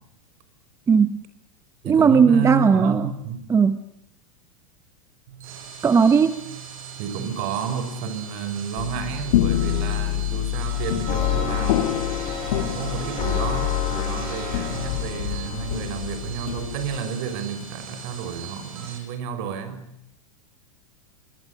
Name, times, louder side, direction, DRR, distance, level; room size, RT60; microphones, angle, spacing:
voice 1, 0.9-1.2 1.8-3.1 3.5-3.8 5.8-6.4, right 6 dB, 15° right, 11 dB, 1.0 m, -17 dB
voice 2, 1.8-3.5 7.0-11.9 12.5-19.9, right 7 dB, 55° right, 11 dB, 6.0 m, -31 dB
sound 1, 5.3-19.0, right 7 dB, 85° right, 7.6 m, -39 dB
sound 2, 8.8-17.0, left 14 dB, 70° left, 2.0 m, -27 dB
sound 3, 11.1-16.0, left 10 dB, 35° left, 5.5 m, -28 dB
26.0 x 22.0 x 9.9 m, 0.76 s
supercardioid pair, 135°, 17 cm